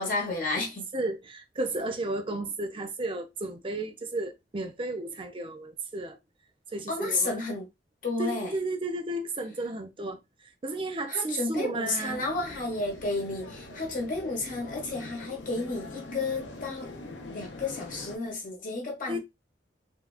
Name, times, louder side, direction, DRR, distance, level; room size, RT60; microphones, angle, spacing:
voice 1, 0.0-0.9 6.9-7.7 8.0-8.5 11.1-16.9 17.3-19.2, left 3 dB, 50° left, 1.0 m, -32 dB
voice 2, 0.9-6.2 6.7-7.5 8.2-12.2 19.1-19.2, right 2 dB, 30° right, 0.5 m, -33 dB
sound 1, 12.1-18.2, left 2 dB, 90° left, 0.7 m, -43 dB
3.4 x 2.3 x 2.3 m
head